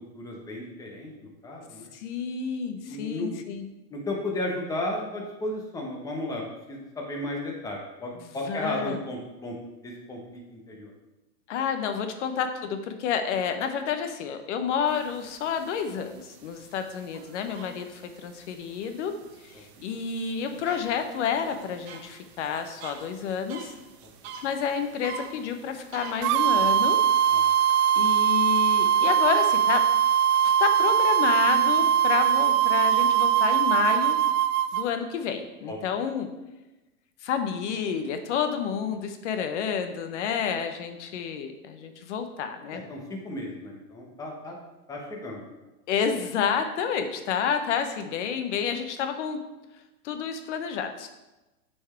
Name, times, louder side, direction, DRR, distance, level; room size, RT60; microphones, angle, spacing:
voice 1, 0.1-1.9 2.8-3.3 3.9-6.4 6.7-9.5 9.8-10.9 17.6-17.7 24.2-24.3 27.3-27.4 35.7-35.8 42.7-44.6 44.9-45.5, left 1 dB, 10° left, -1 dB, 1.1 m, -34 dB
voice 2, 1.9-3.6 8.5-9.0 11.5-19.1 19.4-23.7 24.4-27.0 28.0-29.8 30.6-34.2 34.7-36.3 37.2-42.8 45.9-49.4 50.0-51.1, left 7 dB, 50° left, 7 dB, 1.0 m, -29 dB
sound 1, 14.9-26.5, right 5 dB, 45° right, 0.9 m, -47 dB
sound 2, 26.2-34.9, right 10 dB, 85° right, 0.5 m, -21 dB
8.2 x 4.6 x 4.5 m, 1.0 s
hypercardioid pair, 145°, 46 cm